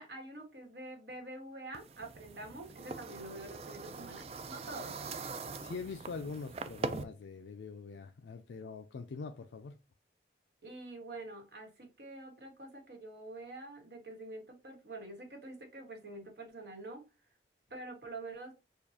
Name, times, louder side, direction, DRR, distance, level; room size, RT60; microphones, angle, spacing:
voice 1, 0.0-5.0 10.6-17.0 17.7-18.5, right 2 dB, 70° right, 1.4 m, -46 dB
sound 1, 1.7-7.0, right 3 dB, 35° right, 0.3 m, -42 dB
voice 2, 5.6-9.8, left 4 dB, 85° left, 0.4 m, -43 dB
6.7 x 2.3 x 2.8 m
head